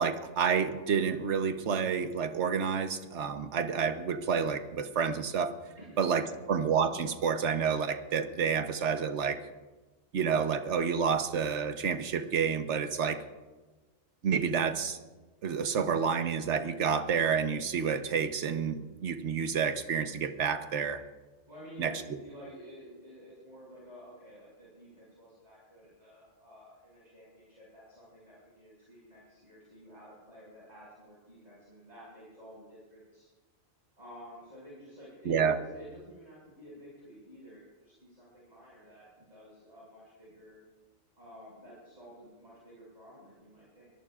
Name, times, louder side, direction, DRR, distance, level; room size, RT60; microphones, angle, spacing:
voice 1, 0.0-5.6 6.0-9.4 10.1-13.2 14.2-15.0 15.4-21.0 21.8-21.9 35.3-35.6, right 6 dB, 60° right, 8 dB, 1.3 m, -29 dB
voice 2, 5.8-6.4 21.5-33.3 34.0-40.6 41.2-43.9, equal, 30° right, -8 dB, 5.9 m, -51 dB
24.0 x 18.5 x 2.5 m, 1.2 s
omnidirectional pair, 1.4 m